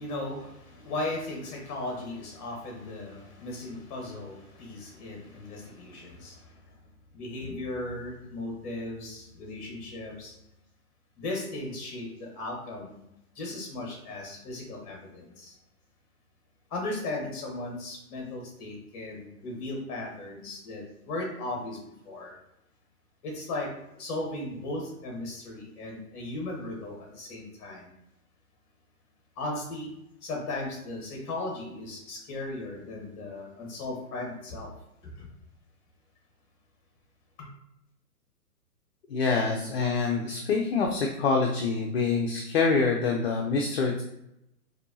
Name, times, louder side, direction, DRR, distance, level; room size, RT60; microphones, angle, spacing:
voice 1, 0.0-6.7 7.1-10.3 11.2-13.0 13.3-15.6 16.7-21.8 22.0-22.4 23.2-23.7 24.0-27.9 29.3-29.9 30.2-34.7 35.0-35.3 37.4-37.5, left 2 dB, 25° left, 0 dB, 1.2 m, -37 dB
voice 2, 39.1-44.0, left 4 dB, 45° left, 1 dB, 0.5 m, -26 dB
4.3 x 2.7 x 2.6 m, 0.83 s
hypercardioid pair, 145°, 46 cm